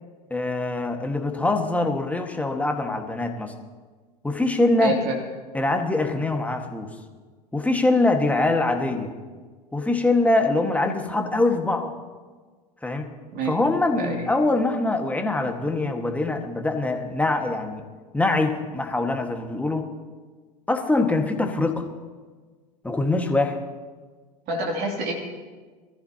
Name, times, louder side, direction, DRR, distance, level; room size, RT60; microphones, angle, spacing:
voice 1, 0.3-3.5 4.2-5.0 5.5-6.9 7.5-9.1 9.7-11.9 12.8-13.1 13.5-17.9 18.1-19.9 20.7-21.9 22.8-23.6, left 2 dB, 5° left, 4 dB, 1.7 m, -23 dB
voice 2, 4.8-5.2 13.3-13.5 14.0-14.3 24.5-25.1, right 3 dB, 50° right, 0 dB, 2.8 m, -27 dB
23.0 x 14.0 x 2.9 m, 1.4 s
hypercardioid pair, 80°, 21 cm